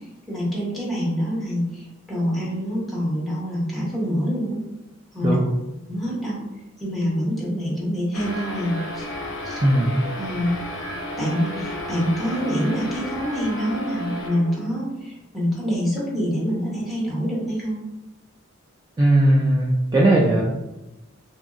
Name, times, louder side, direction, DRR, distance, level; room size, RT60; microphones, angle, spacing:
voice 1, 0.3-4.6 5.1-5.4 5.9-6.4 6.8-9.0 9.4-9.6 10.2-10.5 11.2-17.8, equal, ahead, -6 dB, 0.9 m, -26 dB
sound 1, 8.1-14.7, left 1 dB, 65° left, 0.5 m, -32 dB
voice 2, 9.6-10.0 19.0-20.4, right 1 dB, 20° right, -5 dB, 0.3 m, -18 dB
2.7 x 2.7 x 2.5 m, 0.98 s
head